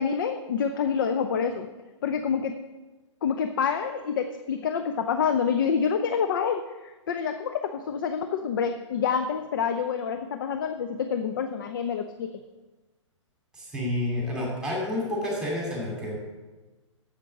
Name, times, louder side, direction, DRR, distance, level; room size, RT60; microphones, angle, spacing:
voice 1, 0.0-1.7 2.0-2.6 3.2-12.4, left 6 dB, 40° left, 8 dB, 0.5 m, -27 dB
voice 2, 13.5-16.2, left 1 dB, 5° right, -2 dB, 2.6 m, -29 dB
7.5 x 7.3 x 6.6 m, 1.2 s
figure-of-eight pair, 120°, 16 cm